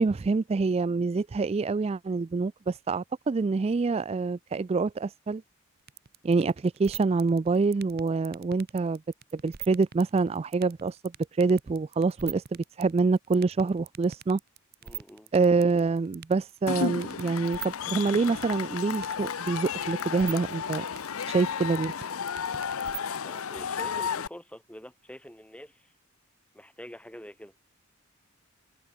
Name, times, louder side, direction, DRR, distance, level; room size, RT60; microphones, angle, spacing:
voice 1, 0.0-5.4 6.2-9.0 9.4-14.4 15.3-20.9 21.3-21.9, right 4 dB, 30° right, 0.3 m, -26 dB
sound 1, 5.9-23.2, right 11 dB, 45° right, 0.8 m, -41 dB
voice 2, 14.8-15.3 23.2-25.9 26.5-27.5, equal, 5° left, 3.3 m, -46 dB
Cheering / Crowd, 16.7-24.3, left 6 dB, 75° left, 0.7 m, -33 dB
head